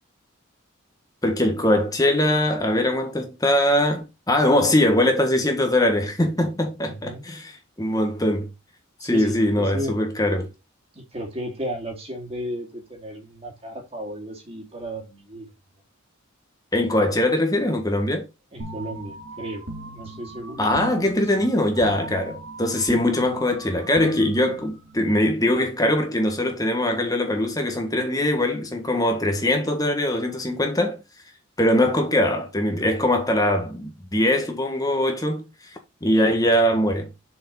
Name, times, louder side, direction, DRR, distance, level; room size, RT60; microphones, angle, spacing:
voice 1, 1.2-8.5 9.0-10.5 16.7-18.3 20.6-31.0 31.6-35.5 36.0-37.1, left 1 dB, 20° left, 1.6 m, -22 dB
voice 2, 6.8-7.3 9.0-10.0 10.9-15.5 18.5-19.6 19.9-20.9 21.2-21.3, equal, 30° right, 2.3 m, -34 dB
sound 1, 18.6-25.0, right 2 dB, 65° right, 2.4 m, -39 dB
6.7 x 5.2 x 4.0 m
head